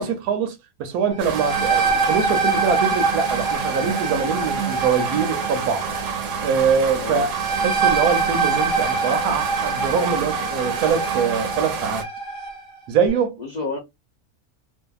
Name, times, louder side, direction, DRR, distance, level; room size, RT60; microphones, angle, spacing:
voice 1, 0.0-5.9 6.4-7.3 7.6-12.0 12.9-13.4, right 6 dB, 90° right, 1.1 m, -23 dB
sound 1, 1.1-12.6, right 4 dB, 5° left, 0.5 m, -25 dB
sound 2, 1.2-12.0, right 7 dB, 65° right, 0.9 m, -29 dB
voice 2, 13.4-13.8, left 3 dB, 70° left, 0.4 m, -30 dB
2.6 x 2.4 x 2.2 m
omnidirectional pair, 1.6 m